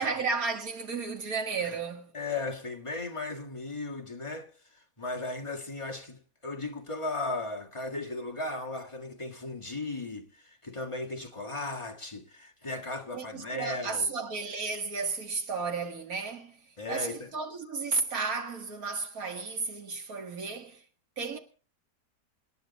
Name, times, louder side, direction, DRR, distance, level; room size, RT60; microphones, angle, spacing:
voice 1, 0.0-2.1 13.1-16.6 16.9-20.8 21.2-21.4, right 4 dB, 65° right, 2.2 m, -33 dB
voice 2, 2.1-14.1 16.8-17.3, left 2 dB, 20° left, 1.8 m, -36 dB
26.5 x 10.0 x 4.2 m
omnidirectional pair, 1.7 m